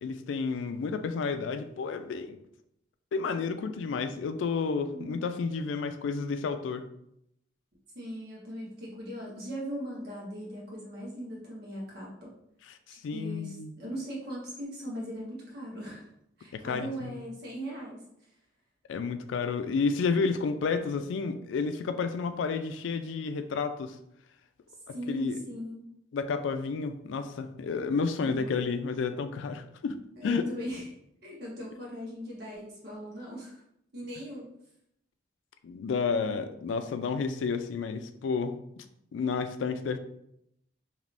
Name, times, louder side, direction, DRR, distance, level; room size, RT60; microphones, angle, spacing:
voice 1, 0.0-2.4 3.1-6.8 12.7-12.8 13.0-13.7 16.5-17.2 18.9-24.0 25.1-25.4 26.1-30.4 35.6-38.8 39.1-40.0, left 5 dB, 85° left, 9 dB, 0.3 m, -31 dB
voice 2, 4.9-5.2 7.9-12.3 12.9-16.1 16.4-18.0 24.9-25.9 28.2-28.5 30.2-30.9 31.2-33.6 33.9-34.5, equal, 60° right, -4 dB, 1.2 m, -39 dB
3.3 x 2.8 x 2.5 m, 0.76 s
head